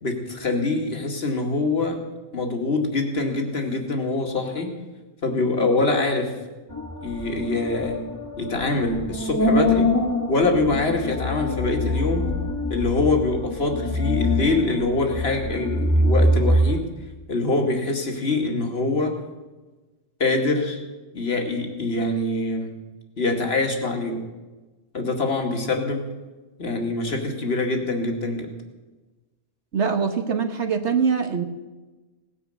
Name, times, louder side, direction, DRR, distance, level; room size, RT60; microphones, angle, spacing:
voice 1, 0.0-2.0 2.3-4.7 5.2-6.3 7.0-8.0 8.4-9.9 10.3-12.3 12.7-16.8 17.3-19.1 20.2-20.8 21.1-22.7 23.2-24.2 24.9-26.1 26.6-28.5, left 2 dB, 55° left, 3 dB, 2.5 m, -24 dB
sound 1, 6.7-16.8, left 1 dB, 15° left, 1.9 m, -24 dB
voice 2, 29.7-31.4, right 6 dB, 65° right, 6 dB, 1.5 m, -23 dB
18.0 x 9.9 x 7.9 m, 1.2 s
omnidirectional pair, 1.3 m